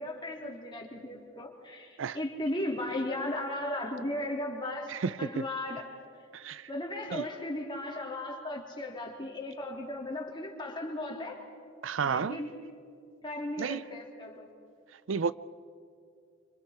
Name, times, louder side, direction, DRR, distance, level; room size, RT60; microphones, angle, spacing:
voice 1, 0.0-5.9 6.7-11.4 12.0-12.5 13.2-14.5, left 1 dB, 25° left, 3.1 m, -36 dB
voice 2, 4.9-5.4 6.3-6.7 7.1-7.3 11.8-12.4 13.6-13.8 15.1-15.3, right 6 dB, 90° right, 0.5 m, -32 dB
27.0 x 25.5 x 4.4 m
head